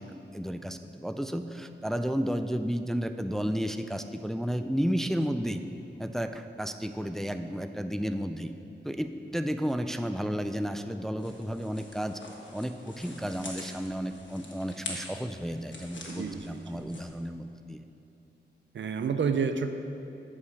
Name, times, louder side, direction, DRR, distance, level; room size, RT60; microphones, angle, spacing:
voice 1, 0.0-5.6 6.0-8.5 8.8-12.2 12.5-17.8, equal, ahead, 8 dB, 0.3 m, -32 dB
sound 1, 11.2-17.1, left 2 dB, 85° left, 1.2 m, -45 dB
voice 2, 16.1-16.8 18.7-19.7, right 6 dB, 85° right, 8 dB, 0.5 m, -30 dB
8.4 x 4.9 x 6.3 m, 2.9 s
wide cardioid pair, 80°, 19 cm